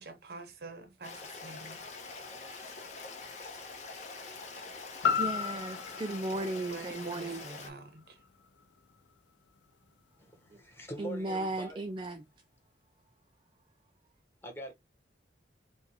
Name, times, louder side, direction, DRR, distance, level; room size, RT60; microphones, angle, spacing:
voice 1, 0.0-1.8 2.4-2.7 6.1-8.2, right 3 dB, 60° right, 0.8 m, -47 dB
Stream, 1.0-7.7, left 4 dB, 40° left, 1.1 m, -45 dB
voice 2, 4.3-4.6 5.2-7.4 10.5-10.6 11.0-12.2, right 2 dB, 25° right, 0.4 m, -36 dB
sound 1, 5.0-9.1 9.6-9.7, left 7 dB, 80° left, 0.5 m, -35 dB
voice 3, 10.2-11.8 14.4-14.7, right 1 dB, 15° left, 1.2 m, -44 dB
4.8 x 2.3 x 4.2 m
head